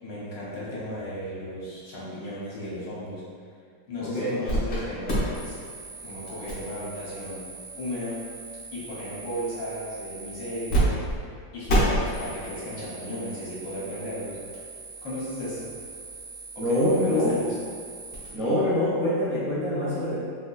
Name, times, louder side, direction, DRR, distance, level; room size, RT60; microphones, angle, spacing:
voice 1, 0.0-3.2 3.9-5.6 6.0-7.5 7.8-8.2 8.7-11.1 11.5-14.4 15.0-15.7 16.5-17.5, left 1 dB, 70° left, -7 dB, 1.4 m, -35 dB
voice 2, 4.0-4.4 16.6-17.3 18.3-20.1, left 1 dB, 35° right, -14 dB, 1.1 m, -25 dB
sound 1, 4.4-4.8 5.1-10.8 11.1-11.2 11.7-18.3, right 1 dB, 50° left, 0.8 m, -32 dB
3.8 x 2.7 x 2.3 m, 2.2 s
omnidirectional pair, 2.1 m